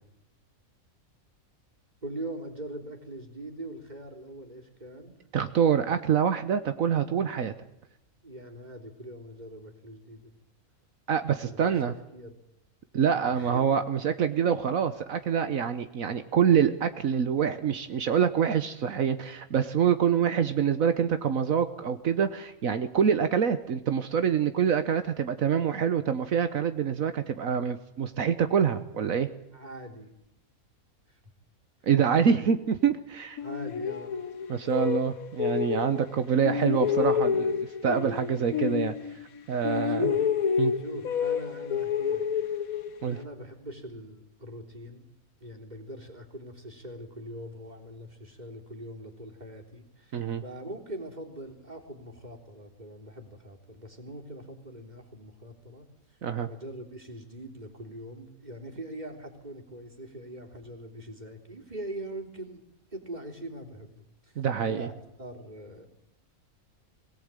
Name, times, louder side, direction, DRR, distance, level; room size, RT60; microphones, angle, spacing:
voice 1, 2.0-5.2 8.2-10.3 11.4-12.4 13.3-13.8 29.5-30.2 31.1-31.2 32.3-32.4 33.4-34.2 39.9-40.5 40.7-42.5 43.1-45.1 45.4-56.2 56.5-62.6 62.9-64.4 64.7-64.9 65.2-65.9, right 1 dB, 30° right, 1 dB, 3.7 m, -42 dB
voice 2, 5.3-7.5 11.1-11.9 12.9-29.3 31.9-32.6 32.8-33.4 34.5-38.9 39.5-40.0 40.6-40.7 43.0-43.2 50.1-50.4 56.2-56.5 64.4-64.9, right 7 dB, 70° right, 10 dB, 1.4 m, -26 dB
sound 1, 33.4-36.1 36.4-39.4 39.6-43.2, left 7 dB, 75° left, 1.6 m, -29 dB
22.5 x 18.0 x 9.0 m, 0.83 s
omnidirectional pair, 1.5 m